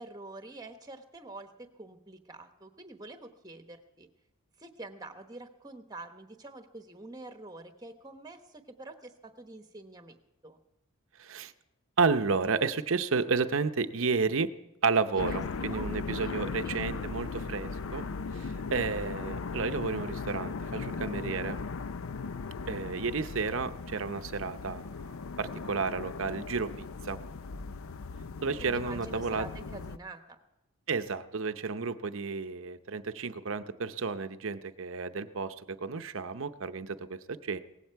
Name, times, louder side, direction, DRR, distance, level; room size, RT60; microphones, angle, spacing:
voice 1, 0.0-4.1 4.6-10.2 10.4-10.6 15.1-15.2 15.6-17.0 18.5-19.0 28.6-30.4, right 2 dB, 15° right, 7 dB, 1.1 m, -46 dB
voice 2, 11.2-11.5 12.0-14.5 14.8-18.0 18.3-21.6 22.7-25.0 25.4-27.2 28.4-29.5 30.9-37.6, right 4 dB, 60° right, 11 dB, 0.7 m, -31 dB
sound 1, 15.2-30.0, left 4 dB, 65° left, 0.5 m, -38 dB
18.0 x 15.5 x 4.6 m, 0.93 s
head